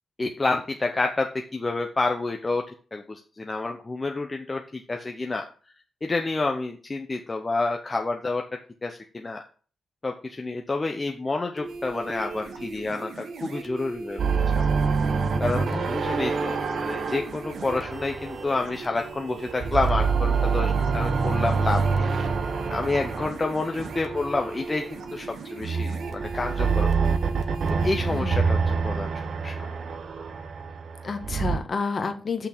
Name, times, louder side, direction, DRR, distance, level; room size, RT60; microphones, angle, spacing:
voice 1, 0.2-2.6 2.9-5.4 6.0-8.4 8.8-9.4 10.0-14.2 14.5-14.6 15.4-22.1 22.7-27.1 27.4-29.1 29.4-29.6, left 3 dB, 20° left, 3 dB, 0.8 m, -29 dB
sound 1, 11.6-28.2, right 3 dB, 70° right, 1.6 m, -38 dB
sound 2, 14.2-19.1 19.5-24.8 25.6-31.6, right 5 dB, 55° right, 1.0 m, -26 dB
voice 2, 28.1-28.5 31.0-32.5, left 4 dB, 40° left, 8 dB, 1.3 m, -30 dB
6.5 x 5.9 x 6.7 m, 0.40 s
wide cardioid pair, 145°, 0 cm